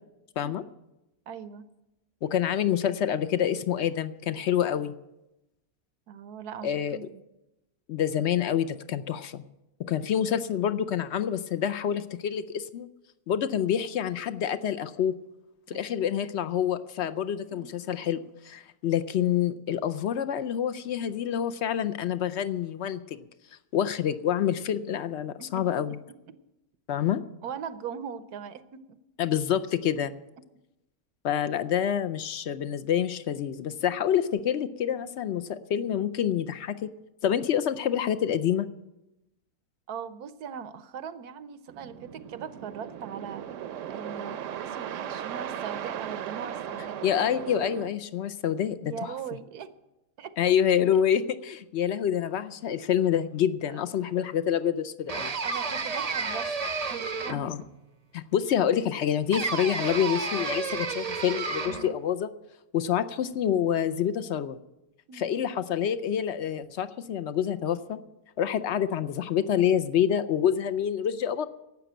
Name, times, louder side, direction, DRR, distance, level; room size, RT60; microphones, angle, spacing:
voice 1, 1.3-1.7 6.1-7.2 15.7-15.8 17.5-17.7 25.4-26.0 26.3-26.4 27.4-29.0 39.9-43.4 43.9-47.0 48.9-49.7 50.2-50.4 55.4-56.5 56.9-57.7 65.1-65.3, right 7 dB, 85° right, 13 dB, 1.3 m, -40 dB
voice 2, 2.2-4.9 6.6-7.0 7.9-9.4 9.8-12.9 13.3-15.2 15.7-18.2 18.4-23.3 23.7-25.9 26.9-27.2 29.2-30.1 31.2-36.7 37.2-38.7 47.0-49.1 50.4-55.3 57.3-57.6 58.1-62.3 62.7-64.6 65.1-68.0 68.4-71.5, left 9 dB, 65° left, 13 dB, 0.7 m, -27 dB
sound 1, 41.7-47.9, right 9 dB, 65° right, 0.9 m, -37 dB
sound 2, 55.1-57.6 59.3-61.9, right 4 dB, 40° right, 0.5 m, -31 dB
12.0 x 8.2 x 8.9 m, 0.95 s
omnidirectional pair, 1.6 m